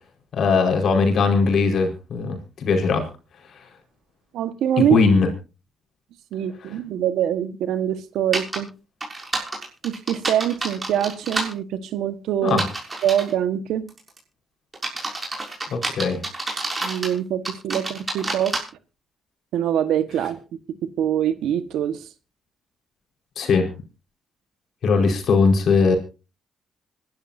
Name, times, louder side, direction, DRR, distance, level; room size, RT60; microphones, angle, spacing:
voice 1, 0.3-3.1 4.8-5.3 12.4-12.6 15.7-16.2 23.4-23.7 24.8-25.9, left 4 dB, 60° left, 4 dB, 4.8 m, -19 dB
voice 2, 4.3-5.0 6.3-8.7 9.8-12.6 13.0-13.8 16.8-18.5 19.5-20.4 21.0-22.0, right 10 dB, 80° right, 12 dB, 1.4 m, -24 dB
sound 1, 8.3-8.6 9.0-11.5 12.5-13.3 13.9-14.2 14.7-17.1 17.4-18.6, right 2 dB, 20° right, 6.6 m, -28 dB
26.0 x 12.5 x 2.7 m, 0.32 s
cardioid pair, 90°, 0 cm